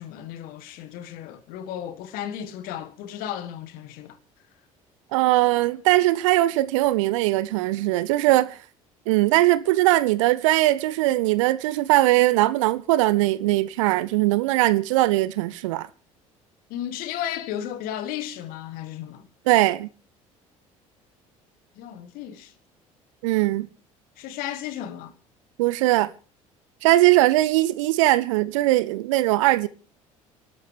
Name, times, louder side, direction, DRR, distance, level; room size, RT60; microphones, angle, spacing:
voice 1, 0.0-4.2 16.7-19.3 21.8-22.5 24.2-25.1, left 10 dB, 55° left, 1.7 m, -34 dB
voice 2, 5.1-8.6 9.1-15.9 19.5-19.9 23.2-23.7 25.6-26.1 26.8-29.7, right 17 dB, 65° right, 0.8 m, -20 dB
29.5 x 12.5 x 3.4 m
figure-of-eight pair, 55°, 18 cm